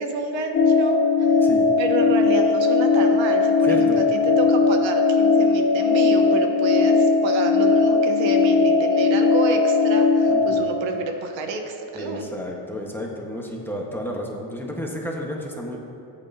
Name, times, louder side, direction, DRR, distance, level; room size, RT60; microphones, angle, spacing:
voice 1, 0.0-1.4 1.8-12.2, right 3 dB, 75° right, 4 dB, 1.2 m, -29 dB
sound 1, 0.5-10.6, left 4 dB, 45° left, 0.9 m, -18 dB
voice 2, 3.6-4.0 10.3-10.7 11.9-15.8, equal, 5° left, -1 dB, 1.4 m, -32 dB
12.5 x 8.3 x 2.8 m, 2.8 s
cardioid pair, 105°, 46 cm